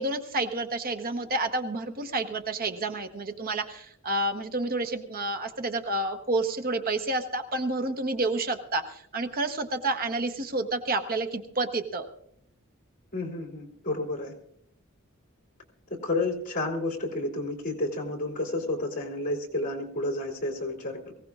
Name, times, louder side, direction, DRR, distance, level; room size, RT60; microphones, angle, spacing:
voice 1, 0.0-12.1, right 2 dB, 45° right, 7 dB, 0.9 m, -29 dB
voice 2, 13.1-14.3 16.0-21.1, left 2 dB, 40° left, 1 dB, 3.1 m, -31 dB
23.0 x 16.5 x 2.4 m, 0.70 s
head